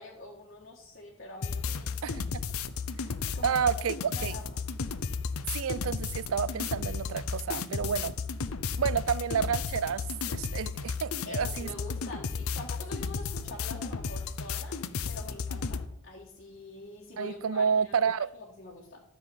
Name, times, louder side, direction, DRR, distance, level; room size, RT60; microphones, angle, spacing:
voice 1, 0.0-2.0 3.3-3.8 4.1-4.6 11.3-14.8 15.1-17.9 18.3-19.0, left 2 dB, 50° left, 1.7 m, -45 dB
sound 1, 1.4-15.9, left 5 dB, 85° left, 0.7 m, -34 dB
voice 2, 3.4-4.4 5.5-8.2 8.8-11.7 17.2-18.3, right 7 dB, 75° right, 0.4 m, -30 dB
13.0 x 4.6 x 7.1 m
head